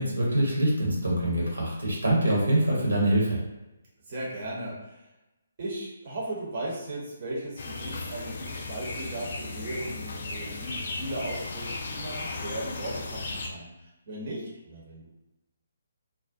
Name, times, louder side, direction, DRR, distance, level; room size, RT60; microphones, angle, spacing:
voice 1, 0.0-3.4, right 1 dB, 75° right, -4 dB, 0.9 m, -24 dB
voice 2, 4.1-5.0 5.6-15.1, right 1 dB, 40° right, -5 dB, 0.7 m, -37 dB
sound 1, 7.6-13.5, left 3 dB, 45° left, 0.3 m, -36 dB
2.4 x 2.1 x 2.5 m, 0.96 s
figure-of-eight pair, 140°, 0 cm